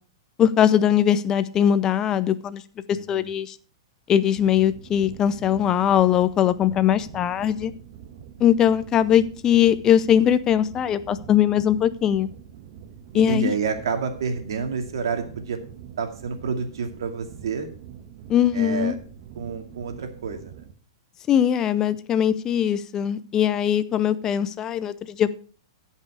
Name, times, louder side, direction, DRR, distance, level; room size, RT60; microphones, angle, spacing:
voice 1, 0.4-2.6 3.1-3.5 4.1-7.7 8.4-12.3 13.1-13.5 18.3-18.9 21.3-25.3, left 10 dB, 25° left, 0.6 m, -20 dB
sound 1, 4.3-20.7, right 9 dB, 50° right, 1.3 m, -44 dB
voice 2, 13.1-15.6 16.0-17.7 18.5-18.9 19.4-20.6, right 5 dB, 80° right, 2.2 m, -29 dB
15.0 x 5.6 x 4.8 m
hypercardioid pair, 135°, 2 cm